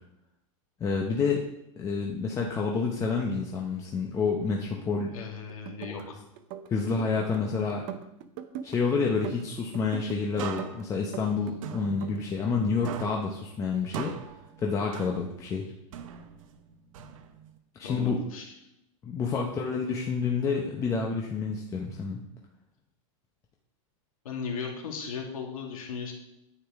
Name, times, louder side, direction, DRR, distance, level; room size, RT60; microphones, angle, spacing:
voice 1, 0.8-1.4 1.8-5.1 5.8-6.0 6.7-7.8 8.6-14.2 14.6-15.7 17.0-17.1 17.7-18.2 19.0-22.2, left 5 dB, 20° left, 0 dB, 0.8 m, -29 dB
voice 2, 5.1-6.2 17.8-18.5 19.2-19.6 24.2-26.1, left 5 dB, 90° left, 1 dB, 2.3 m, -37 dB
sound 1, 5.5-6.1 6.4-7.4 7.7-8.8 9.1-10.2 10.6-11.6 11.8-13.0, right 9 dB, 40° right, 0.7 m, -41 dB
sound 2, 10.4-12.6 12.8-15.5 15.9-17.6, right 8 dB, 70° right, 1.0 m, -41 dB
9.7 x 7.9 x 3.6 m, 0.85 s
supercardioid pair, 150°, 17 cm